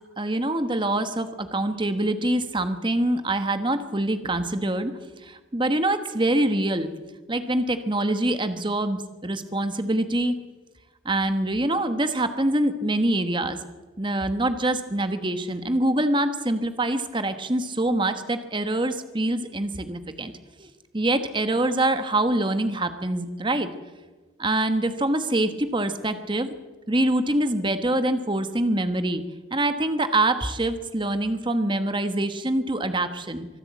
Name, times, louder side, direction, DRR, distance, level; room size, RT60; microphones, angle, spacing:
voice 1, 0.2-6.9 7.3-10.4 11.0-13.6 14.0-20.3 20.6-23.7 24.4-26.5 26.9-29.2 29.5-33.5, right 1 dB, 25° right, 9 dB, 1.3 m, -25 dB
24.5 x 13.0 x 8.5 m, 1.2 s
head